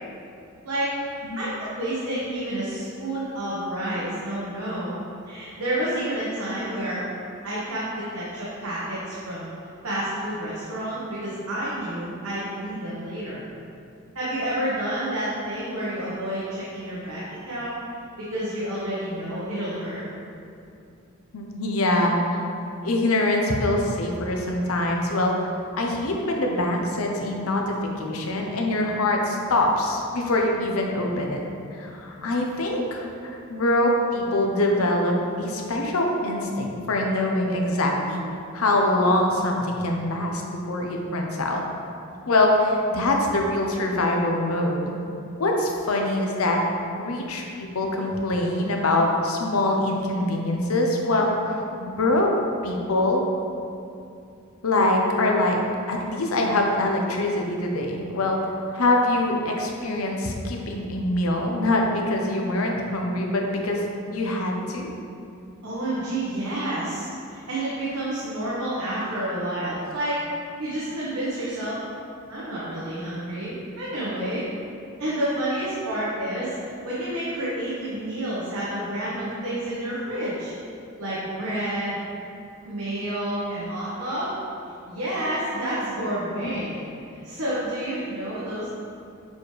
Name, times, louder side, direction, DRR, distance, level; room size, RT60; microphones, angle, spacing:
voice 1, 1.4-5.0 5.2-7.0 7.4-9.5 9.8-13.4 14.1-17.7 18.2-20.0 65.6-70.2 70.6-71.8 72.3-74.4 75.0-76.5 76.8-80.5 81.0-82.0 82.6-84.3 84.9-86.9 87.2-88.8, right 1 dB, 90° right, -9 dB, 1.2 m, -29 dB
voice 2, 21.3-22.4 22.8-25.3 25.8-31.4 31.7-38.2 38.5-41.6 42.3-44.9 45.4-46.6 47.0-52.3 52.6-53.2 54.6-55.6 55.9-58.4 58.7-63.8 64.1-64.9, left 1 dB, 90° left, 1 dB, 0.8 m, -24 dB
7.0 x 4.3 x 3.3 m, 2.6 s
head